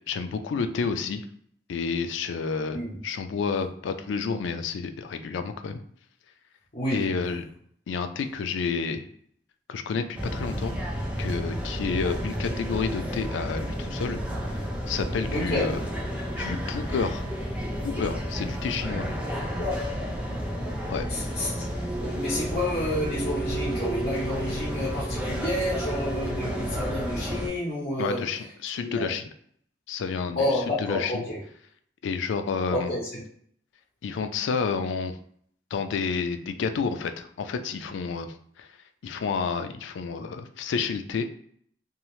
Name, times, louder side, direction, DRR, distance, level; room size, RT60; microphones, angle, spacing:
voice 1, 0.1-1.3 1.7-2.8 3.0-5.8 6.9-7.4 7.9-9.0 9.7-10.8 11.2-15.8 16.4-17.2 17.8-19.1 20.9-21.0 28.0-29.2 29.9-30.4 30.8-31.3 32.0-32.9 34.0-35.2 35.7-38.3 38.6-38.7 39.0-41.2, left 5 dB, 85° left, 9 dB, 0.3 m, -30 dB
voice 2, 2.7-3.0 6.7-7.2 15.3-15.8 19.6-20.0 21.1-21.6 22.0-28.3 28.8-29.1 30.4-31.4 32.7-33.2, left 1 dB, 50° left, -7 dB, 0.8 m, -30 dB
sound 1, 10.2-27.5, equal, 5° right, 0.4 m, -31 dB
2.7 x 2.0 x 3.0 m, 0.64 s
head